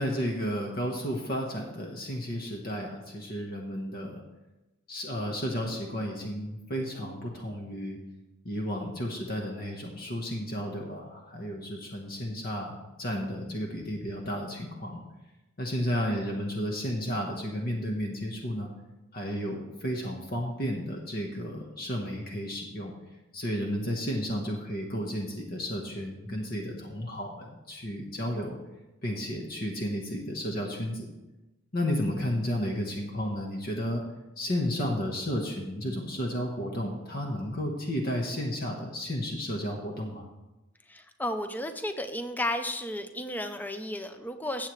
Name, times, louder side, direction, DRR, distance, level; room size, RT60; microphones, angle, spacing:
voice 1, 0.0-4.2 4.9-8.0 8.4-15.0 15.6-18.7 19.1-22.9 23.3-28.6 29.0-31.1 31.7-34.0 34.4-40.3, equal, 50° left, 1 dB, 1.3 m, -32 dB
voice 2, 40.9-44.7, left 1 dB, 10° left, 8 dB, 0.7 m, -33 dB
15.5 x 7.7 x 3.3 m, 1.0 s
head